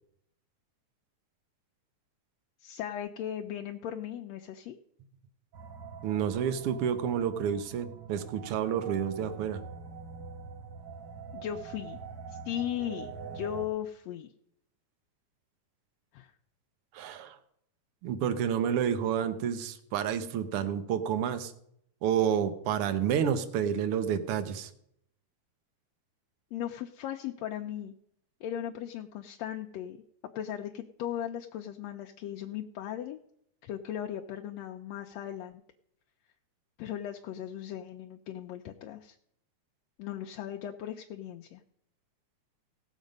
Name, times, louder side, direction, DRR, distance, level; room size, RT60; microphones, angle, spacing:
voice 1, 2.6-4.8 11.3-12.0 12.3-14.3 16.1-16.3 26.5-27.9 28.4-30.0 30.3-33.2 33.6-35.6 36.8-39.2 40.0-41.6, left 10 dB, 75° left, 3 dB, 1.6 m, -37 dB
sound 1, 5.5-13.7, right 6 dB, 85° right, 0.9 m, -44 dB
voice 2, 6.0-9.6 16.9-17.4 18.0-21.5 22.0-24.7, right 8 dB, 65° right, 10 dB, 1.5 m, -29 dB
17.0 x 7.3 x 5.2 m, 0.72 s
omnidirectional pair, 3.4 m